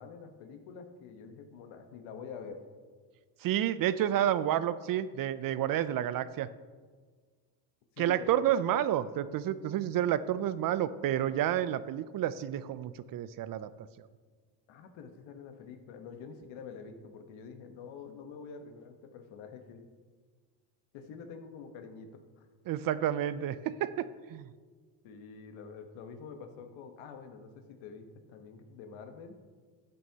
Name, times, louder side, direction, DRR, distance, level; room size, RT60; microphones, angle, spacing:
voice 1, 0.0-2.6 7.9-8.5 14.7-19.9 20.9-22.5 25.0-29.4, left 6 dB, 75° left, 7 dB, 1.2 m, -47 dB
voice 2, 3.4-6.5 8.0-13.7 14.0-14.1 22.7-24.5, right 11 dB, 50° right, 15 dB, 0.5 m, -30 dB
12.5 x 9.4 x 2.8 m, 1.5 s
cardioid pair, 100°, 47 cm